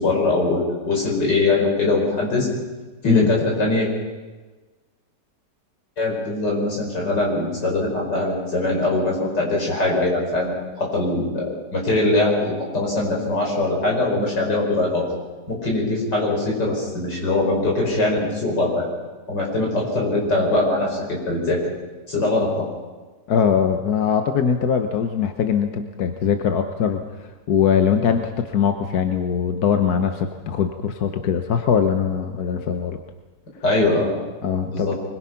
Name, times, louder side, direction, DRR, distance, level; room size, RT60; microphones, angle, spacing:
voice 1, 0.0-2.5 3.0-3.9 6.0-15.1 15.5-18.9 19.3-21.6 22.1-22.7 33.6-34.1 34.6-35.0, left 2 dB, 85° left, -2 dB, 6.2 m, -22 dB
voice 2, 23.3-33.0 34.4-34.9, left 7 dB, 65° left, 6 dB, 1.5 m, -21 dB
25.0 x 21.0 x 5.8 m, 1.3 s
omnidirectional pair, 1.8 m